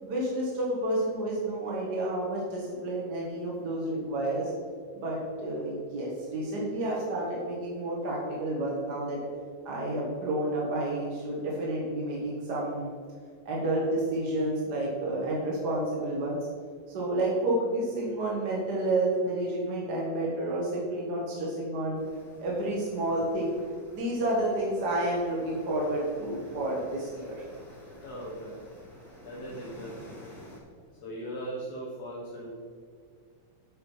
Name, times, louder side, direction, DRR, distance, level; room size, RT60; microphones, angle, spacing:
voice 1, 0.0-4.5 4.9-9.2 9.6-12.9 13.4-16.4 16.9-22.0 22.4-23.5 23.9-27.5, right 1 dB, 40° right, -5 dB, 1.6 m, -30 dB
sound 1, 21.9-30.6, left 1 dB, 40° left, 3.0 m, -51 dB
voice 2, 28.0-28.5 29.2-30.2 31.0-32.5, right 1 dB, 60° left, -5 dB, 2.5 m, -39 dB
8.7 x 6.8 x 5.5 m, 2.1 s
omnidirectional pair, 3.4 m